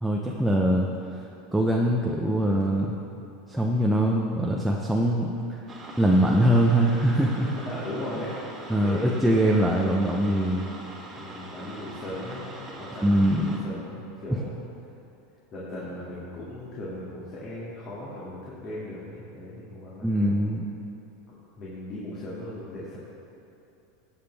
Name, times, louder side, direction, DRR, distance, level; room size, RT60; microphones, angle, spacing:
voice 1, 0.0-0.9 1.5-3.0 3.5-5.6 6.0-7.5 8.7-10.7 13.0-13.8 14.3-14.4 20.0-20.7, right 1 dB, 5° right, -2 dB, 0.6 m, -23 dB
sound 1, 5.7-13.6, right 2 dB, 25° right, 1.6 m, -42 dB
voice 2, 7.1-9.5 11.1-14.5 15.5-20.4 21.6-23.0, left 1 dB, 35° left, -8 dB, 2.2 m, -37 dB
16.5 x 7.3 x 3.4 m, 2.8 s
supercardioid pair, 135°, 0 cm